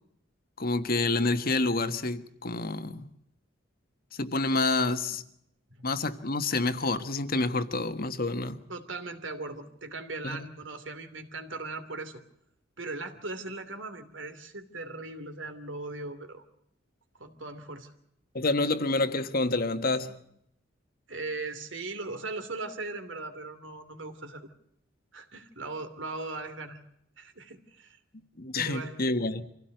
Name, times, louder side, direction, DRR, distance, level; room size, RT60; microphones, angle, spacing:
voice 1, 0.6-3.1 4.1-5.2 5.8-8.6 10.2-10.4 18.3-20.2 28.4-29.4, left 2 dB, 50° left, 1.5 m, -28 dB
voice 2, 8.7-12.2 12.8-16.4 17.2-17.9 21.1-24.5 25.1-26.8 27.2-28.0 28.5-29.1, right 3 dB, 80° right, 2.8 m, -39 dB
25.5 x 16.5 x 7.9 m
head